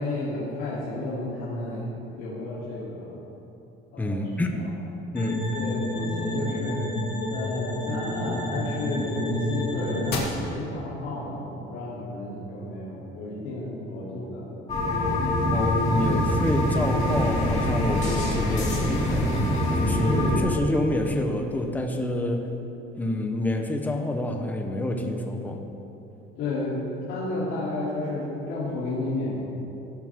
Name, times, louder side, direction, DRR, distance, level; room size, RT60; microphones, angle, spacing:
voice 1, 0.0-1.9 2.2-3.2 3.9-4.2 5.5-6.8 7.3-14.5 26.4-29.3, left 2 dB, 75° left, -9 dB, 3.2 m, -32 dB
voice 2, 4.0-4.5 5.1-5.6 15.5-19.4 19.7-22.5 23.0-25.6, left 1 dB, 10° left, 3 dB, 0.9 m, -28 dB
sound 1, 5.2-10.2, left 1 dB, 55° left, 2.4 m, -29 dB
sound 2, 14.7-20.4, left 1 dB, 35° left, 3.2 m, -24 dB
17.5 x 10.5 x 3.7 m, 3.0 s
cardioid pair, 155°, 21 cm